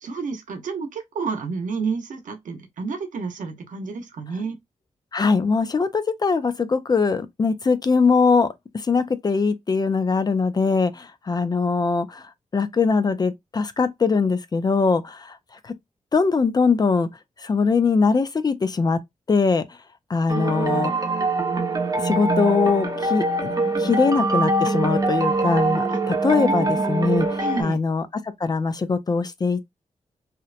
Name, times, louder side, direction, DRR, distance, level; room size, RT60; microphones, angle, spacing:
voice 1, 0.0-4.6 20.3-21.3 25.9-26.0 26.3-27.0 27.4-27.8, right 4 dB, 85° right, 0.7 m, -31 dB
voice 2, 5.1-8.5 8.8-12.3 12.5-15.4 15.6-15.7 16.1-17.1 17.4-19.0 19.3-19.6 20.1-20.9 22.0-23.5 23.8-28.1 28.4-29.7, left 4 dB, 30° left, 0.3 m, -21 dB
sound 1, 20.3-27.6, right 2 dB, 30° right, 0.6 m, -23 dB
2.8 x 2.0 x 2.4 m
wide cardioid pair, 110°, 13 cm